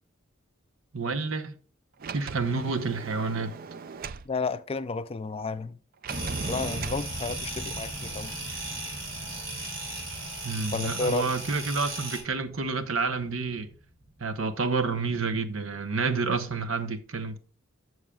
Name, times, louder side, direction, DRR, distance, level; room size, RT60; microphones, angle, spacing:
voice 1, 0.9-1.5 2.1-3.6 10.4-13.7 14.2-17.4, right 4 dB, 90° right, 0.9 m, -29 dB
Sliding door, 2.0-4.3 6.0-7.1, right 5 dB, 45° right, 0.4 m, -38 dB
voice 2, 4.3-5.8 6.4-8.4 10.7-11.3, left 4 dB, 30° left, 0.4 m, -32 dB
sound 1, 6.1-14.9, right 1 dB, 10° right, 0.8 m, -42 dB
sound 2, 6.1-12.2, right 2 dB, 70° right, 4.0 m, -37 dB
13.5 x 6.3 x 2.4 m
head